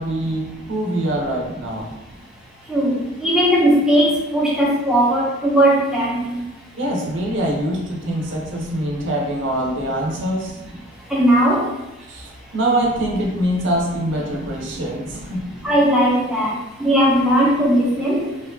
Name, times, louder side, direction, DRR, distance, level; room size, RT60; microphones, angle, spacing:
voice 1, 0.0-1.9 6.8-10.6 12.1-15.5, right 1 dB, 70° right, -1 dB, 0.6 m, -24 dB
voice 2, 2.7-6.4 11.1-11.6 15.6-16.5 16.8-18.2, equal, 5° right, -4 dB, 0.4 m, -17 dB
2.6 x 2.2 x 2.5 m, 0.99 s
head